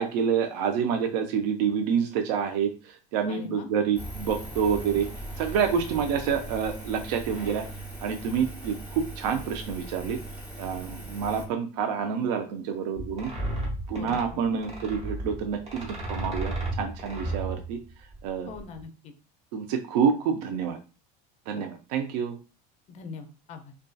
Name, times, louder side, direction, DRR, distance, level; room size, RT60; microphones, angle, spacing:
voice 1, 0.0-5.1 5.4-7.6 8.0-10.2 10.6-13.3 13.9-17.8 18.2-18.5 19.5-20.8 21.5-22.4, right 7 dB, 75° right, 5 dB, 0.4 m, -28 dB
voice 2, 3.3-3.7 4.9-5.0 6.0-6.1 13.9-14.4 18.4-19.1 21.5-21.6 22.9-23.7, left 5 dB, 35° left, 6 dB, 0.4 m, -43 dB
Engine, 4.0-11.5, right 2 dB, 5° right, 0.7 m, -39 dB
sound 1, 12.9-18.8, right 1 dB, 30° right, 0.9 m, -34 dB
2.6 x 2.3 x 2.2 m, 0.33 s
supercardioid pair, 145°, 21 cm